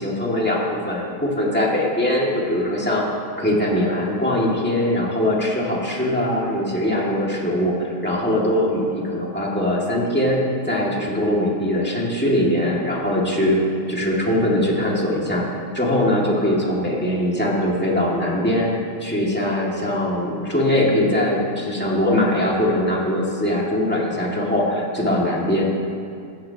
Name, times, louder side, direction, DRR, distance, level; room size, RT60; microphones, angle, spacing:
voice 1, 0.0-3.1 3.4-13.6 13.9-15.4 15.7-18.7 19.0-25.6, left 1 dB, 5° left, -4 dB, 1.8 m, -21 dB
17.0 x 13.5 x 2.9 m, 2.4 s
omnidirectional pair, 2.4 m